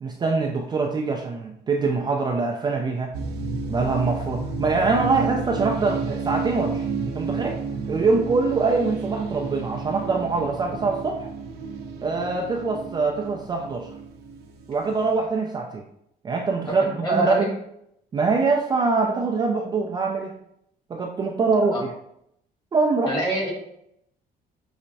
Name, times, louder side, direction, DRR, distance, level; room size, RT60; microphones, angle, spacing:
voice 1, 0.0-3.1 3.7-6.9 7.1-7.6 7.9-11.3 12.0-13.9 14.7-15.8 16.2-16.8 17.1-17.5 18.1-20.3 20.9-21.8 22.7-23.1, right 4 dB, 25° right, 1 dB, 0.3 m, -23 dB
sound 1, 3.1-15.2, right 4 dB, 75° right, 0.6 m, -32 dB
voice 2, 16.7-17.5 21.6-21.8 23.0-23.5, right 1 dB, 25° left, -3 dB, 1.4 m, -27 dB
5.5 x 2.1 x 2.6 m, 0.75 s
cardioid pair, 130°, 17 cm